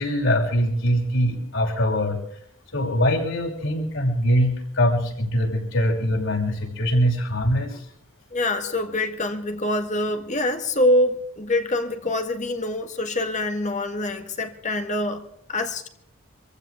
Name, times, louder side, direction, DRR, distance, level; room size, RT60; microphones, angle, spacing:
voice 1, 0.0-2.2 2.7-7.8, equal, 65° left, 6.0 m, -22 dB
voice 2, 8.3-15.9, left 1 dB, 35° left, 1.7 m, -25 dB
26.5 x 15.0 x 3.4 m
head